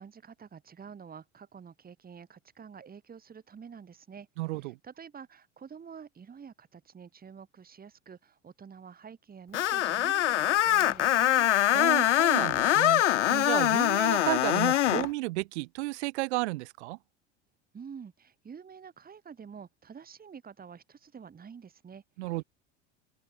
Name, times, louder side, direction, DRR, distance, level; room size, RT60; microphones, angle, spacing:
voice 1, 0.0-4.3 4.6-11.5 17.7-22.4, right 6 dB, 25° right, 2.6 m, -48 dB
voice 2, 4.4-4.8 11.7-17.0 22.2-22.4, right 21 dB, 70° right, 0.7 m, -33 dB
Screech, 9.5-15.1, left 13 dB, 90° left, 0.6 m, -24 dB
open air
hypercardioid pair, 80°, 35 cm